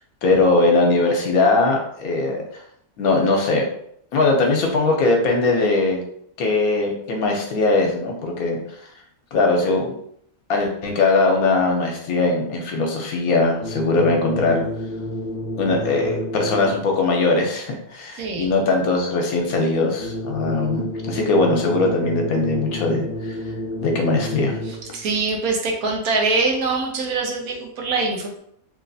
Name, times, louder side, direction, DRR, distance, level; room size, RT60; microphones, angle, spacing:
voice 1, 0.2-2.6 3.0-3.7 4.1-6.0 6.4-8.6 9.3-9.9 10.5-14.6 15.6-23.4 23.8-24.5, left 3 dB, 75° left, 1 dB, 1.1 m, -20 dB
sound 1, 13.6-17.0 20.0-25.0, left 1 dB, 20° left, 0.7 m, -30 dB
voice 2, 18.2-18.5 24.7-28.4, right 3 dB, 75° right, 1 dB, 1.1 m, -23 dB
3.0 x 2.9 x 2.6 m, 0.69 s
omnidirectional pair, 1.6 m